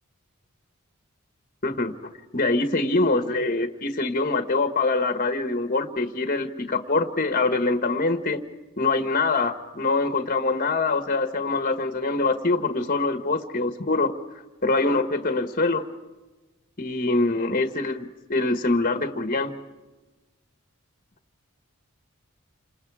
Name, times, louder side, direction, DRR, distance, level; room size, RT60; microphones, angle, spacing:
voice 1, 1.6-1.9 2.3-8.4 8.8-14.1 14.6-15.9 16.8-19.5, left 3 dB, 40° left, 8 dB, 1.5 m, -24 dB
29.0 x 27.0 x 4.9 m, 1.2 s
head